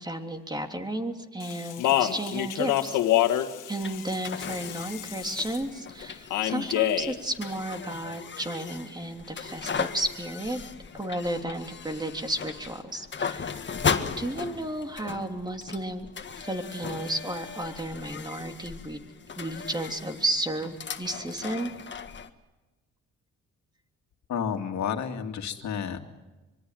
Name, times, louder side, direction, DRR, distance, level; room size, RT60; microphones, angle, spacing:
voice 1, 0.0-3.0 3.7-10.6 10.9-13.6 13.9-16.1 16.4-19.0 19.4-21.7, right 1 dB, 15° right, 5 dB, 3.2 m, -33 dB
Speech, 1.4-5.6 6.3-7.2, left 13 dB, 90° left, 1.8 m, -27 dB
sound 1, 3.8-22.3, left 6 dB, 40° left, 1.8 m, -37 dB
voice 2, 24.3-26.0, left 7 dB, 65° left, 5 dB, 2.4 m, -31 dB
25.5 x 23.5 x 7.7 m, 1.1 s
cardioid pair, 90°, 30 cm